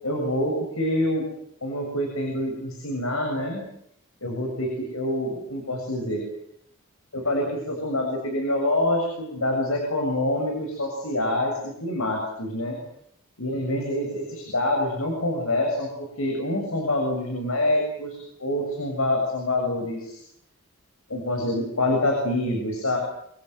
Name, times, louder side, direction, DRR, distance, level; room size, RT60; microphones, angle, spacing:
voice 1, 0.0-1.3 1.6-3.6 4.2-6.2 7.1-12.8 13.4-15.9 16.2-20.2 21.1-23.0, left 1 dB, 85° left, 2 dB, 7.0 m, -26 dB
28.0 x 23.5 x 8.0 m, 0.72 s
head